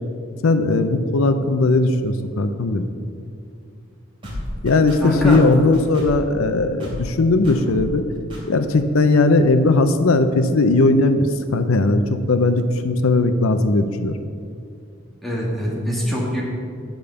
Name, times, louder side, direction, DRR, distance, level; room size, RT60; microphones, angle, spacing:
voice 1, 0.4-2.9 4.6-8.0 8.5-14.2, left 2 dB, 85° left, 9 dB, 0.6 m, -18 dB
sound 1, 4.2-6.3 6.8-7.2 7.4-8.0 8.3-8.4, left 1 dB, 25° right, 2.7 m, -32 dB
voice 2, 5.0-5.6 15.2-16.4, equal, ahead, -5 dB, 1.9 m, -24 dB
10.5 x 5.1 x 6.8 m, 2.3 s
head